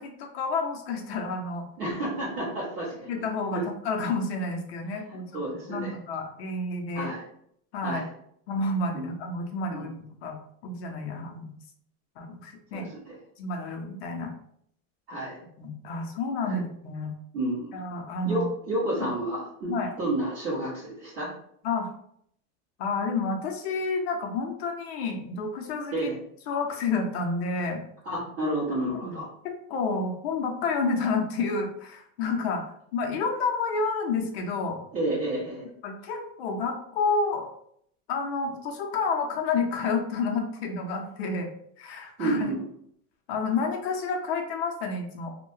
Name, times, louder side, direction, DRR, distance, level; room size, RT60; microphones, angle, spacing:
voice 1, 0.0-1.7 3.1-5.2 5.7-7.1 7.7-8.0 8.5-10.4 10.6-11.5 12.2-12.9 13.4-14.3 15.6-17.1 17.7-18.5 19.0-19.1 19.7-19.9 21.6-21.9 22.8-26.1 26.5-27.8 29.0-29.1 29.7-32.6 32.9-34.8 35.8-37.5 38.1-41.5 41.8-42.5 43.3-45.3, left 4 dB, 50° left, 3 dB, 0.5 m, -30 dB
voice 2, 1.8-3.2 3.5-3.6 5.1-5.9 6.9-7.2 7.8-8.1 8.9-9.1 9.7-9.9 12.7-13.2 15.1-15.4 16.4-16.6 17.3-17.8 18.2-21.3 25.9-26.2 28.0-29.3 34.9-35.7 42.2-42.6, right 1 dB, 35° right, -10 dB, 1.2 m, -30 dB
2.6 x 2.1 x 3.1 m, 0.69 s
supercardioid pair, 180°, 41 cm